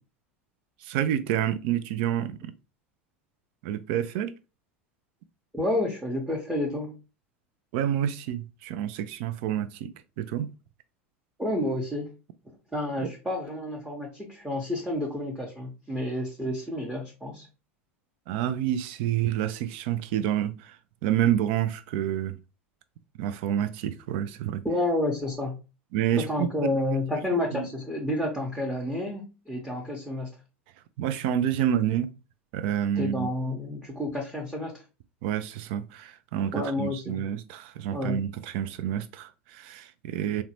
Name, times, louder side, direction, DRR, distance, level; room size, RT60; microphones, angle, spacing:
voice 1, 0.8-2.5 3.6-4.4 7.7-9.9 10.2-10.5 13.0-13.1 18.3-20.7 21.0-22.4 23.2-24.6 25.9-26.7 27.1-27.2 27.5-27.6 31.0-32.1 32.5-33.3 35.2-40.4, right 10 dB, 60° right, 0.4 m, -28 dB
voice 2, 5.5-7.0 11.4-12.1 12.7-17.5 24.6-25.6 26.2-30.3 33.0-34.8 36.5-37.2 37.9-38.2, left 1 dB, 5° right, 0.8 m, -30 dB
3.8 x 2.2 x 2.9 m
hypercardioid pair, 80°, 7 cm